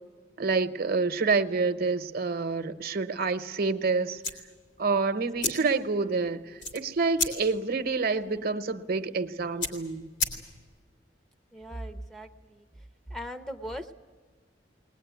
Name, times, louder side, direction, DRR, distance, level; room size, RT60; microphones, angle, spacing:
voice 1, 0.4-4.2 4.8-10.1, right 4 dB, 55° right, 0.9 m, -28 dB
sound 1, 4.2-10.8, left 3 dB, 80° left, 3.3 m, -36 dB
voice 2, 11.5-12.6 13.1-14.0, equal, ahead, 0.7 m, -39 dB
20.5 x 20.0 x 9.3 m
head